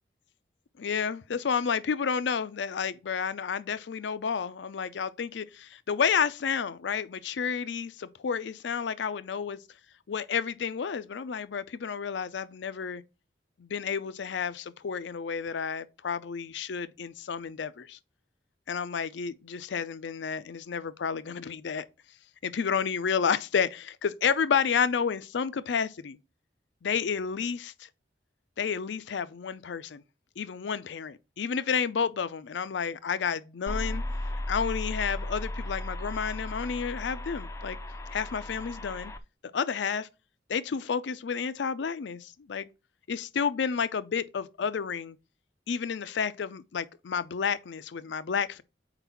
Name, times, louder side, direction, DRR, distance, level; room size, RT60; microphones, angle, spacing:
voice 1, 0.8-9.6 10.1-13.0 13.6-18.0 18.7-21.9 22.4-26.2 26.8-27.9 28.6-30.0 30.4-34.0 34.5-37.8 38.1-39.1 39.5-40.1 40.5-42.7 43.1-45.2 45.7-48.6, left 6 dB, 85° left, 0.5 m, -31 dB
sound 1, 33.7-39.2, left 1 dB, 15° left, 0.4 m, -35 dB
4.5 x 4.0 x 5.7 m
head